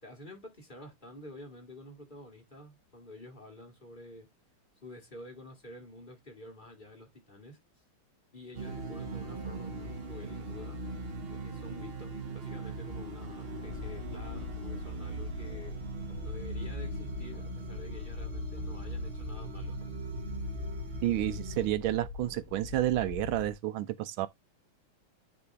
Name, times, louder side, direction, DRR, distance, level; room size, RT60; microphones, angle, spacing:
voice 1, 0.0-4.3 4.8-7.6 8.3-10.8 11.3-15.8 16.2-19.8, left 1 dB, 25° left, 1.9 m, -49 dB
sound 1, 8.5-21.7, right 2 dB, 50° right, 0.7 m, -39 dB
sound 2, 13.6-23.5, left 5 dB, 45° left, 1.6 m, -44 dB
voice 2, 21.0-24.3, right 14 dB, 80° right, 1.4 m, -30 dB
9.7 x 3.9 x 3.4 m
omnidirectional pair, 2.3 m